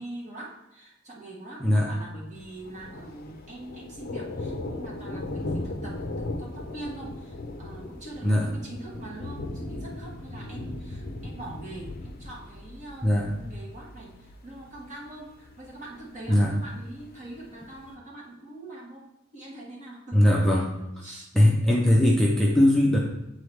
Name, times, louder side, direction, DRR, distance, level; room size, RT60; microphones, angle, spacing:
voice 1, 0.0-20.3 21.0-21.3, right 1 dB, 35° right, -4 dB, 1.6 m, -43 dB
Thunder, 2.4-17.9, left 2 dB, 45° left, 0.6 m, -38 dB
voice 2, 20.1-20.7 21.3-23.0, left 1 dB, ahead, -3 dB, 0.6 m, -20 dB
8.7 x 3.8 x 3.2 m, 0.88 s
head